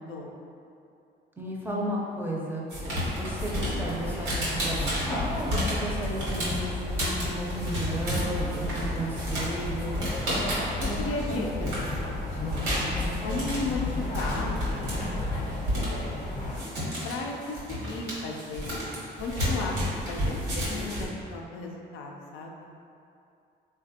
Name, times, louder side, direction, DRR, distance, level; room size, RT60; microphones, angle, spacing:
voice 1, 1.4-2.7 3.2-10.0, right 1 dB, 10° right, -3 dB, 0.5 m, -34 dB
sound 1, 2.7-16.6, left 2 dB, 40° left, 0.6 m, -33 dB
sound 2, 2.7-12.0 12.4-21.1, equal, 85° right, 1.0 m, -32 dB
voice 2, 10.8-16.4 17.0-18.9 19.2-22.6, left 2 dB, 85° left, 0 dB, 0.4 m, -36 dB
3.3 x 2.2 x 2.7 m, 2.6 s
cardioid pair, 90°, 20 cm